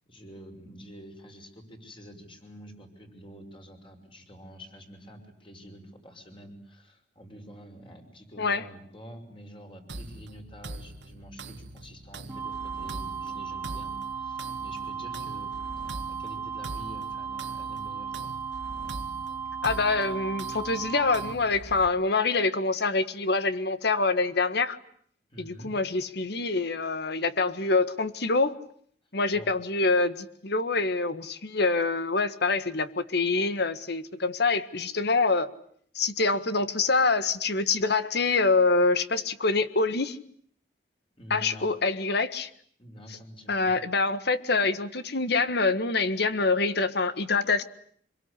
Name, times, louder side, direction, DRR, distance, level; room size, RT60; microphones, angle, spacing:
voice 1, 0.1-18.3 20.0-20.2 25.3-25.7 29.3-29.5 41.2-41.7 42.8-43.8, equal, 30° left, 4 dB, 6.1 m, -47 dB
sound 1, 9.9-21.9, right 2 dB, 75° right, 1.8 m, -43 dB
sound 2, 12.3-21.3, right 6 dB, 15° right, 1.3 m, -36 dB
voice 2, 19.6-24.8 25.4-28.6 29.1-35.5 35.9-40.2 41.3-42.5 43.5-47.6, left 3 dB, 65° left, 12 dB, 1.7 m, -25 dB
26.5 x 23.0 x 9.9 m, 0.63 s
head